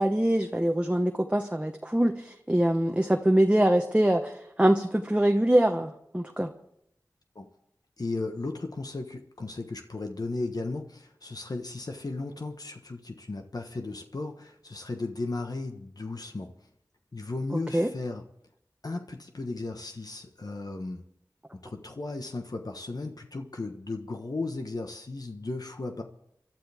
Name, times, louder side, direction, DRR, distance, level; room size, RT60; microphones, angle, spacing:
voice 1, 0.0-6.5 17.7-17.9, right 1 dB, 15° right, 3 dB, 1.0 m, -24 dB
voice 2, 8.0-16.5 17.1-18.2 18.8-21.0 21.5-26.0, left 3 dB, 60° left, 4 dB, 1.3 m, -35 dB
28.0 x 12.0 x 3.6 m, 0.77 s
wide cardioid pair, 55°, 7 cm